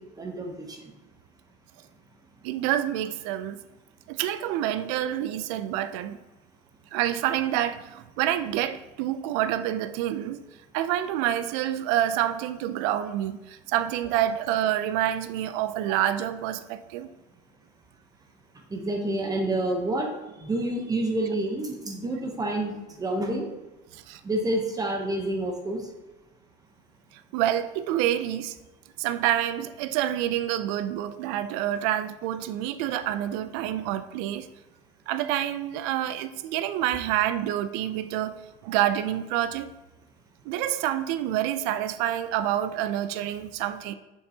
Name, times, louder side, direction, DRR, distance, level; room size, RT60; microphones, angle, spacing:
voice 1, 0.2-0.8 18.7-20.1 20.4-22.7 23.0-23.5 24.2-25.8, right 1 dB, 20° right, 0.8 m, -28 dB
voice 2, 2.4-3.6 4.1-6.2 6.9-10.4 10.7-17.1 23.9-24.2 27.1-28.6 29.0-34.5 35.1-38.4 38.6-39.7 40.5-43.9, right 12 dB, 85° right, 0.4 m, -27 dB
6.9 x 5.3 x 2.8 m
cardioid pair, 125°, 19 cm